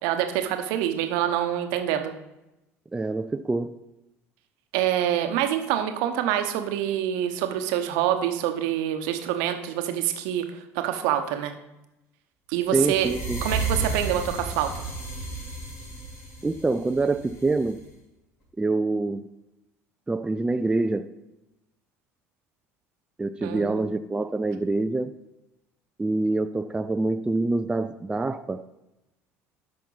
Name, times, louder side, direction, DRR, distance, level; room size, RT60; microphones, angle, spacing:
voice 1, 0.0-2.1 4.7-11.5 12.5-13.1 13.4-14.8 23.4-23.9, right 11 dB, 60° right, 7 dB, 1.0 m, -26 dB
voice 2, 2.9-3.8 12.7-13.4 16.4-17.8 18.6-19.3 20.1-21.1 23.2-25.1 26.0-28.6, right 2 dB, 10° right, 10 dB, 0.4 m, -26 dB
sound 1, 12.8-17.8, right 3 dB, 45° left, 3.5 m, -32 dB
12.5 x 5.7 x 4.0 m, 0.94 s
figure-of-eight pair, 60°, 8 cm